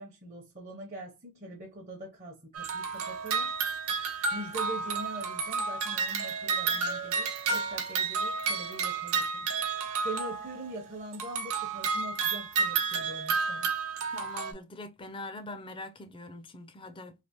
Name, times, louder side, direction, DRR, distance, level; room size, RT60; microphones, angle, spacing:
voice 1, 0.0-3.5 4.3-9.5 10.0-13.7, right 1 dB, 35° right, 0.8 m, -42 dB
sound 1, 2.5-10.7 11.1-14.5, right 5 dB, 90° right, 0.9 m, -31 dB
voice 2, 14.1-17.1, left 2 dB, 25° left, 0.4 m, -43 dB
3.3 x 2.8 x 2.8 m
head